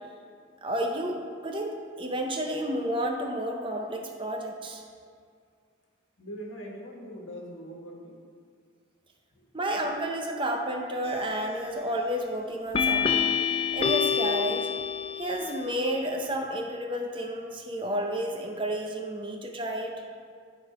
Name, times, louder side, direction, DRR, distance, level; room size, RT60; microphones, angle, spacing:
voice 1, 0.6-4.8 9.5-14.7 15.1-19.9, right 1 dB, 25° right, 2 dB, 0.6 m, -31 dB
voice 2, 6.2-8.1 9.3-9.5, equal, 85° left, -1 dB, 1.4 m, -41 dB
sound 1, 11.0-11.5 12.7-15.5, left 7 dB, 30° left, 0.3 m, -27 dB
10.5 x 3.8 x 4.9 m, 2.1 s
head